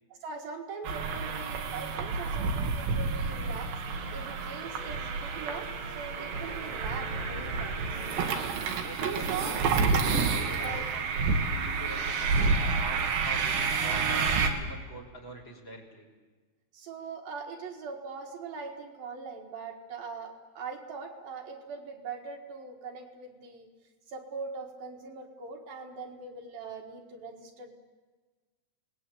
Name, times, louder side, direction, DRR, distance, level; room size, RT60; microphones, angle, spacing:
voice 1, 0.1-5.7 6.0-7.8 9.0-9.6 10.6-10.8 16.7-23.7 24.1-27.7, right 5 dB, 65° right, 2 dB, 3.5 m, -41 dB
sound 1, 0.8-14.5, right 4 dB, 85° right, 4.1 m, -29 dB
sound 2, 3.9-9.5, right 2 dB, 25° right, 0.9 m, -46 dB
voice 2, 8.8-9.9 10.2-16.1, equal, 30° left, 2 dB, 4.3 m, -44 dB
27.5 x 20.0 x 8.5 m, 1.4 s
omnidirectional pair, 4.7 m